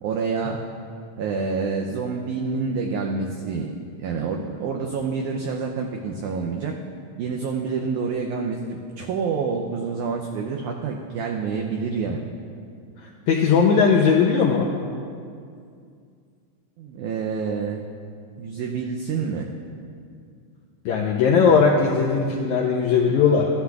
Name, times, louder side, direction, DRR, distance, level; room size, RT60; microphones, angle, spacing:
voice 1, 0.0-0.6 1.2-3.7 4.0-6.7 7.2-12.3 16.8-17.8 18.4-19.5, right 5 dB, 80° right, 1 dB, 1.8 m, -27 dB
voice 2, 13.3-14.7 20.8-23.5, left 5 dB, 80° left, -2 dB, 1.7 m, -18 dB
14.5 x 11.0 x 2.3 m, 2.3 s
omnidirectional pair, 4.0 m